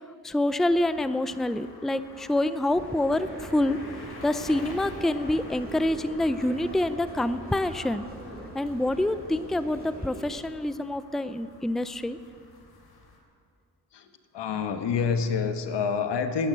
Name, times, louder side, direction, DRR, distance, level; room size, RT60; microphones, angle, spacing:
voice 1, 0.2-3.8 4.2-8.0 8.5-12.2, left 1 dB, ahead, 13 dB, 0.5 m, -26 dB
sound 1, 0.7-13.2, left 3 dB, 60° left, 2.9 m, -48 dB
sound 2, 2.7-10.4, right 2 dB, 20° right, 4.4 m, -42 dB
voice 2, 13.9-16.5, left 5 dB, 80° left, 8 dB, 1.3 m, -28 dB
13.0 x 10.5 x 8.8 m, 2.3 s
cardioid pair, 60°, 42 cm